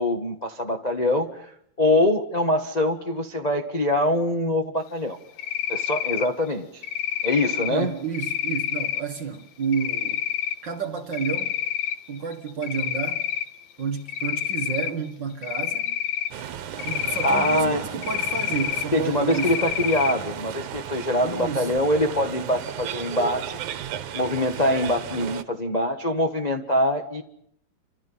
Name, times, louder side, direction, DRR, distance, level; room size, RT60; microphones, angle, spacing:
voice 1, 0.0-1.5 1.8-5.2 5.7-6.8 7.2-7.9 17.2-17.8 18.9-23.6 24.1-27.2, left 1 dB, 30° left, 0.7 m, -24 dB
Cricket, 5.4-6.3 6.8-7.7 8.1-9.0 9.7-10.5 11.0-12.0 12.3-13.5 14.1-14.9 15.4-16.3 16.8-17.6 18.0-18.8 19.3-20.1, left 10 dB, 70° left, 2.6 m, -28 dB
voice 2, 7.7-10.2 10.6-11.5 12.1-13.2 13.8-16.0 16.8-19.6 21.2-21.7, right 6 dB, 45° right, 1.8 m, -30 dB
sound 1, 16.3-25.4, right 10 dB, 85° right, 2.7 m, -35 dB
29.5 x 26.5 x 5.6 m
omnidirectional pair, 3.4 m